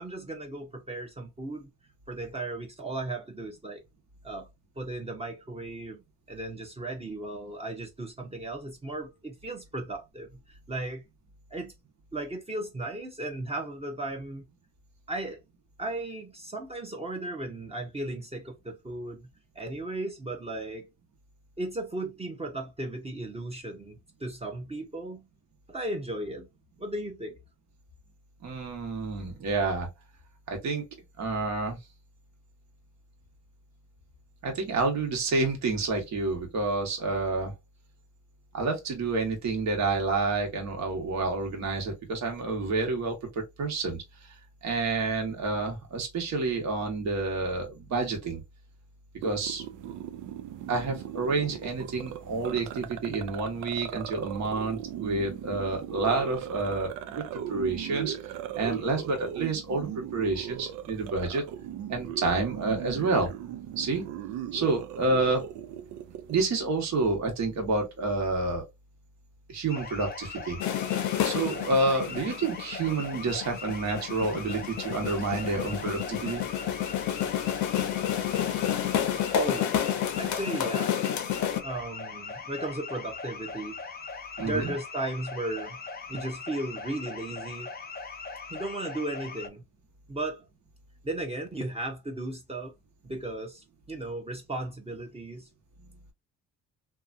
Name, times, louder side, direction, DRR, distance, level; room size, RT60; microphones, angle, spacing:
voice 1, 0.0-1.7 2.1-3.8 4.2-4.5 4.8-11.0 11.5-11.7 12.1-14.4 15.1-15.4 15.8-19.3 19.5-20.9 21.6-25.3 25.7-26.5 26.8-27.4 79.3-79.7 80.2-80.9 81.6-83.8 84.4-85.8 86.1-87.7 88.5-89.6 90.1-90.4 91.0-92.7 93.0-95.5, right 2 dB, 20° right, 0.9 m, -35 dB
voice 2, 28.4-29.9 30.5-30.8 31.2-31.8 34.4-37.5 38.5-44.3 44.6-48.4 49.2-49.6 50.7-57.2 57.5-58.1 58.5-61.4 61.9-63.3 63.8-64.1 64.5-65.5 66.3-68.7 69.5-70.6 71.2-76.4 84.4-84.7, right 3 dB, 65° right, 1.3 m, -29 dB
sound 1, 49.2-66.4, right 10 dB, 90° right, 0.5 m, -39 dB
sound 2, 69.7-89.5, left 4 dB, 30° left, 0.7 m, -40 dB
sound 3, 70.6-81.6, left 10 dB, 70° left, 0.7 m, -30 dB
2.8 x 2.3 x 2.5 m
cardioid pair, 90°, 30 cm